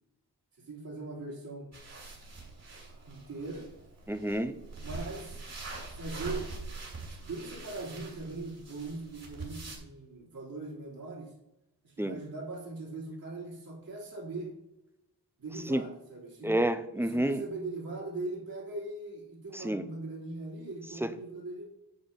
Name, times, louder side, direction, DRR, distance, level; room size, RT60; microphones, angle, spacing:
voice 1, 0.7-1.7 3.0-3.7 4.8-5.4 5.9-6.5 7.2-11.3 11.8-14.5 15.4-16.5 17.1-21.6, right 2 dB, 60° right, -5 dB, 3.0 m, -40 dB
sound 1, 1.7-9.8, right 3 dB, 40° right, 2.5 m, -43 dB
voice 2, 4.1-4.6 12.0-12.2 15.7-15.8 16.4-17.4 19.5-19.9 21.0-21.1, right 1 dB, 5° right, 10 dB, 0.5 m, -29 dB
9.8 x 4.2 x 5.2 m, 0.88 s
wide cardioid pair, 155°, 39 cm